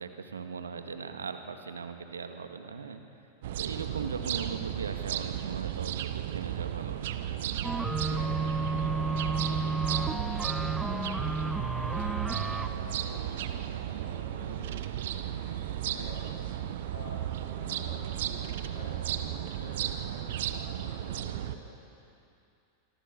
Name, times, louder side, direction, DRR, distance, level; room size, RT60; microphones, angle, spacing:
voice 1, 0.0-3.0 3.6-7.3, right 5 dB, 70° right, 6 dB, 2.0 m, -39 dB
sound 1, 3.4-21.6, right 11 dB, 55° right, 1.2 m, -34 dB
voice 2, 3.6-4.0 8.0-22.1, left 2 dB, 60° left, -6 dB, 7.6 m, -49 dB
sound 2, 7.6-12.7, right 2 dB, 5° right, 1.2 m, -32 dB
26.0 x 25.5 x 7.1 m, 2.6 s
figure-of-eight pair, 90°, 0 cm